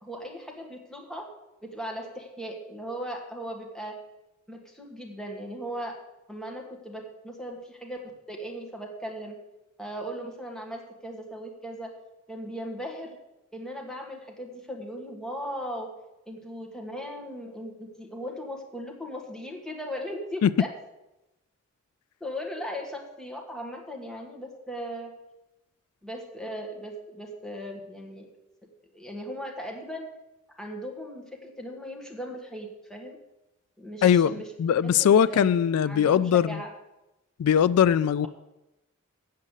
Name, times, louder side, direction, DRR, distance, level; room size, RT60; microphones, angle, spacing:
voice 1, 0.0-1.3 1.6-4.0 4.5-6.0 6.3-8.0 8.3-9.3 9.8-11.9 12.3-13.2 13.5-15.9 16.3-20.7 22.2-25.1 26.0-28.2 28.9-30.1 30.6-33.2 33.8-35.5 35.9-36.7, equal, 5° left, 1.5 m, -38 dB
voice 2, 34.0-36.6 37.4-38.3, left 8 dB, 85° left, 0.3 m, -21 dB
7.5 x 7.3 x 8.1 m
head